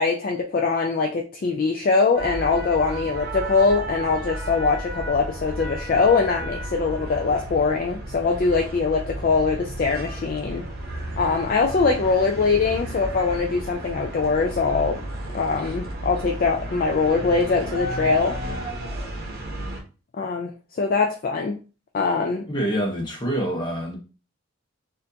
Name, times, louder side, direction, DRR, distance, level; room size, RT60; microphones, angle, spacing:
voice 1, 0.0-10.6 11.2-15.0 15.3-18.4 20.2-20.5 20.8-21.6 21.9-22.5, left 4 dB, 45° left, 0.4 m, -22 dB
sound 1, 2.1-19.8, right 1 dB, 50° right, 0.9 m, -33 dB
voice 2, 22.5-24.0, right 1 dB, 20° left, 1.1 m, -26 dB
4.2 x 2.6 x 2.7 m
head